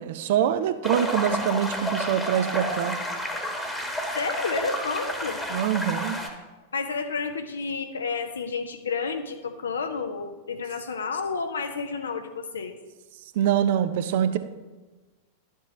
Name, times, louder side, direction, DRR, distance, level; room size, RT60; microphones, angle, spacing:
voice 1, 0.0-3.0 5.5-6.2 13.4-14.4, right 10 dB, 50° right, 11 dB, 0.5 m, -24 dB
sound 1, 0.8-6.3, left 1 dB, 5° left, 1.2 m, -30 dB
voice 2, 4.2-5.4 6.7-12.8, left 5 dB, 70° left, 7 dB, 0.5 m, -30 dB
11.5 x 7.3 x 3.2 m, 1.2 s
figure-of-eight pair, 90°, 0 cm